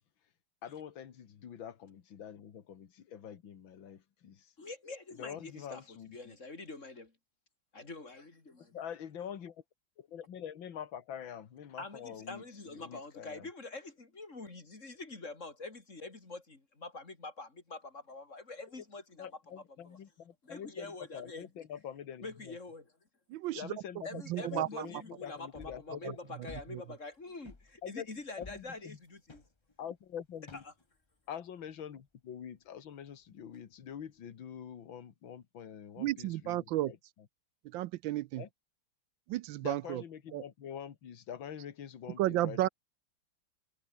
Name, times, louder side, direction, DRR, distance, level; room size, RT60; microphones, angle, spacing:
voice 1, 0.6-4.5 5.2-6.3 8.7-9.6 10.0-12.4 12.7-13.5 19.2-22.6 23.5-26.2 27.8-28.1 28.4-29.0 29.8-30.6 31.3-37.0 38.4-38.5 39.6-42.7, left 8 dB, 65° left, 2.4 m, -45 dB
voice 2, 4.6-7.1 7.7-8.8 11.8-20.0 20.4-21.5 22.2-22.9 24.0-29.4 30.5-30.7, left 3 dB, 35° left, 3.6 m, -46 dB
voice 3, 23.3-23.7 24.3-24.9 26.0-26.1 26.7-26.8 36.0-36.9 37.7-38.4 39.3-40.0 40.3-40.4 42.2-42.7, right 15 dB, 75° right, 1.2 m, -32 dB
sound 1, 25.5-25.9 26.5-27.2 27.4-30.0 30.5-31.0 33.5-33.6, left 3 dB, 20° left, 0.9 m, -52 dB
omnidirectional pair, 2.4 m